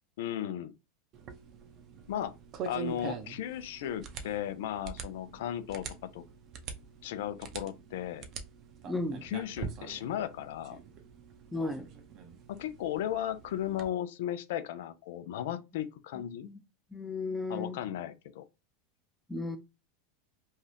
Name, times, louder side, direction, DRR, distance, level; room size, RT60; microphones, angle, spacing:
voice 1, 0.2-0.7 2.1-2.3 2.6-6.2 7.0-8.3 9.2-10.8 12.5-16.5 17.5-18.4, left 11 dB, 75° left, 0.4 m, -36 dB
sound 1, 1.1-13.9, right 6 dB, 45° right, 0.6 m, -45 dB
voice 2, 8.8-9.2 11.5-11.9 16.4-16.6 16.9-17.8 19.3-19.6, left 2 dB, 5° left, 0.6 m, -34 dB
2.7 x 2.3 x 3.3 m
supercardioid pair, 115°, 0 cm